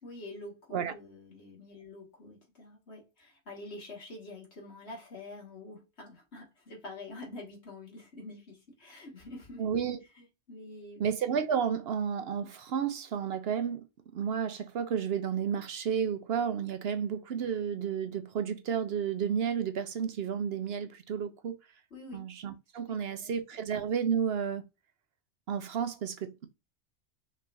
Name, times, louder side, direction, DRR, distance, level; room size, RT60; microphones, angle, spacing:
voice 1, 0.0-9.7 10.2-11.0 21.9-22.2 22.9-23.0 23.2-23.3, left 2 dB, 65° left, 2.2 m, -46 dB
voice 2, 9.6-10.0 11.0-13.9 14.1-21.6 22.1-24.6 25.5-26.5, right 7 dB, 65° right, 0.8 m, -32 dB
5.4 x 3.2 x 2.6 m
omnidirectional pair, 1.2 m